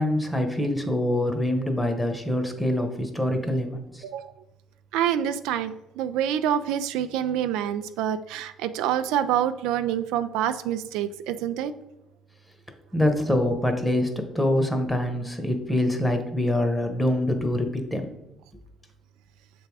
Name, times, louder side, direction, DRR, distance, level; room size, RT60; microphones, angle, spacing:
voice 1, 0.0-4.0 12.9-18.1, left 1 dB, 10° left, 5 dB, 1.1 m, -25 dB
voice 2, 4.9-11.7, right 10 dB, 85° right, 10 dB, 0.3 m, -27 dB
6.5 x 3.4 x 4.7 m, 0.89 s
supercardioid pair, 75°, 0 cm